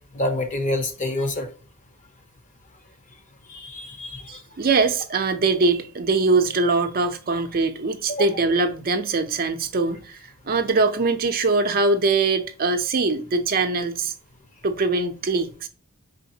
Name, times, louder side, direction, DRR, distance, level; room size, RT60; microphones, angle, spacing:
voice 1, 0.1-1.5 3.5-4.4 8.1-8.3, left 1 dB, 35° left, 0.8 m, -27 dB
voice 2, 4.3-14.1 14.6-15.7, right 3 dB, 45° right, 0.5 m, -22 dB
4.9 x 3.9 x 2.7 m
head